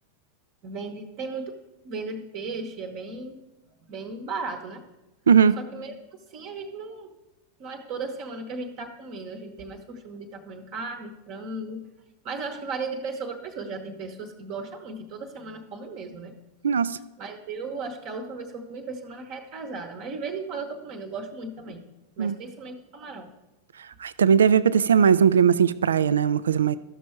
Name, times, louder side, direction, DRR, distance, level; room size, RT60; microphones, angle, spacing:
voice 1, 0.6-3.4 3.9-4.8 5.6-5.9 6.3-7.2 7.6-11.9 12.2-16.3 17.2-21.8 22.2-23.3, right 3 dB, 40° right, 4 dB, 0.9 m, -36 dB
voice 2, 16.6-17.0 22.2-22.3 24.0-26.8, right 7 dB, 65° right, 16 dB, 0.3 m, -19 dB
13.5 x 6.3 x 4.4 m, 1.0 s
figure-of-eight pair, 90°, 0 cm